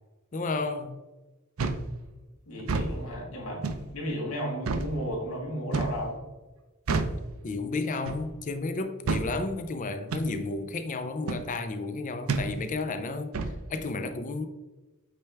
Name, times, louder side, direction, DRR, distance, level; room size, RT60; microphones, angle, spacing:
voice 1, 0.3-0.9 7.4-13.3 13.7-14.5, left 3 dB, 35° left, 0.5 m, -32 dB
sound 1, 1.6-1.9 2.6-2.9 3.6-3.9 4.7-4.9 5.7-6.0 6.9-7.2 8.1-8.3 9.1-9.3 10.1-10.3 11.3-11.5 12.3-12.5 13.3-13.6, right 3 dB, 70° right, 0.5 m, -28 dB
voice 2, 2.5-6.2, equal, 85° left, 1.8 m, -34 dB
8.4 x 3.4 x 3.4 m
head